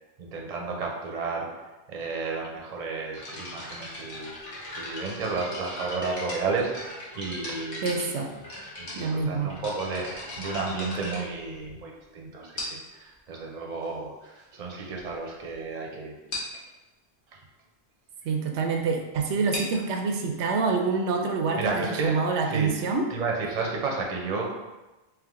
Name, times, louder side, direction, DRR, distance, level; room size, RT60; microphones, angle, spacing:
voice 1, 0.2-1.5 1.9-4.3 4.8-8.0 8.8-16.1 16.5-16.7 17.3-17.4 21.6-24.4, right 4 dB, 45° right, 0 dB, 0.7 m, -32 dB
sound 1, 3.1-12.0 12.6-13.0 13.8-13.9 14.5-14.6 14.9-15.1 15.4-15.5 15.8-15.9 16.3-16.6 19.3-22.8, left 1 dB, 75° left, 1.4 m, -39 dB
voice 2, 7.8-8.3 8.9-9.5 18.2-21.6 22.0-23.1, right 4 dB, 85° right, 3 dB, 0.9 m, -26 dB
3.4 x 3.2 x 3.6 m, 1.1 s
omnidirectional pair, 1.1 m